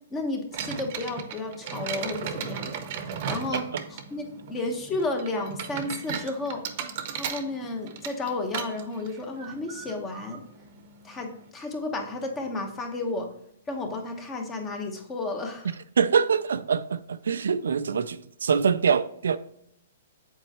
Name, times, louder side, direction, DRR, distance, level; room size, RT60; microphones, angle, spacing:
voice 1, 0.1-3.6 3.9-6.6 7.1-10.4 11.0-13.3 13.7-15.8, left 2 dB, 20° left, 1.1 m, -32 dB
sound 1, 0.5-11.5, right 7 dB, 45° right, 0.8 m, -37 dB
voice 2, 16.0-19.4, right 6 dB, 90° right, 0.4 m, -24 dB
7.8 x 4.5 x 2.9 m
hypercardioid pair, 150°, 0 cm